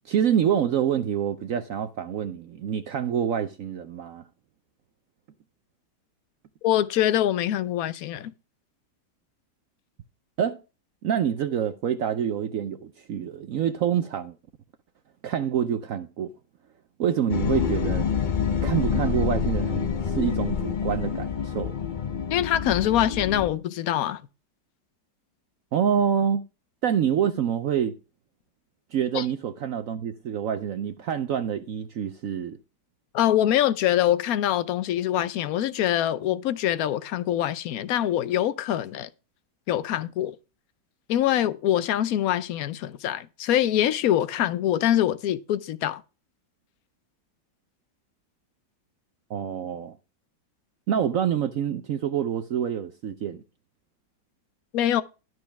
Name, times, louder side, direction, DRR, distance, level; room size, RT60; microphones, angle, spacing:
voice 1, 0.0-4.2 10.4-10.6 11.0-14.3 15.2-16.3 17.0-18.1 18.6-21.8 25.7-26.4 26.8-27.9 28.9-32.6 49.3-50.0 50.9-53.4, right 9 dB, 65° right, 0.9 m, -26 dB
voice 2, 6.6-8.3 22.3-24.2 29.1-29.3 33.1-39.1 39.7-40.3 41.1-46.0 54.7-55.0, left 11 dB, 65° left, 1.0 m, -24 dB
sound 1, 17.3-23.5, left 6 dB, 85° left, 0.4 m, -27 dB
12.5 x 4.7 x 5.8 m
omnidirectional pair, 1.9 m